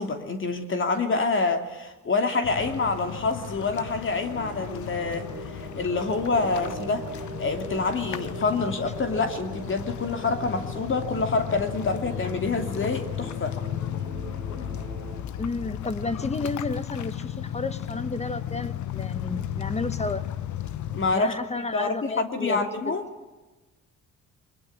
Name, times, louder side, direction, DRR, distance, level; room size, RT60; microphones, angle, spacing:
voice 1, 0.0-7.1 7.4-13.6 20.9-21.3 21.7-23.0, left 3 dB, 40° left, 6 dB, 2.8 m, -27 dB
sound 1, 2.4-21.1, left 10 dB, 70° left, 1.1 m, -35 dB
sound 2, 4.2-15.2, right 3 dB, 25° right, 3.0 m, -42 dB
voice 2, 15.4-20.3 21.1-22.7, left 3 dB, 20° left, 13 dB, 1.4 m, -32 dB
23.0 x 21.0 x 8.7 m, 1.2 s
cardioid pair, 90°, 30 cm